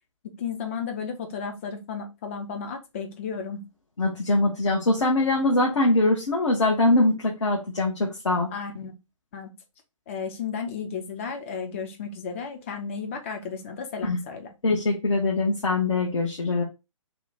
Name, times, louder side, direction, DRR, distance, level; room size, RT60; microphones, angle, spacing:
voice 1, 0.2-3.7 8.5-8.9 9.3-9.5 10.1-14.5, left 6 dB, 25° left, 5 dB, 0.5 m, -33 dB
voice 2, 4.0-8.5 14.0-14.2 14.6-16.6, left 2 dB, 60° left, -2 dB, 0.9 m, -23 dB
2.8 x 2.2 x 4.0 m, 0.26 s
figure-of-eight pair, 135°, 17 cm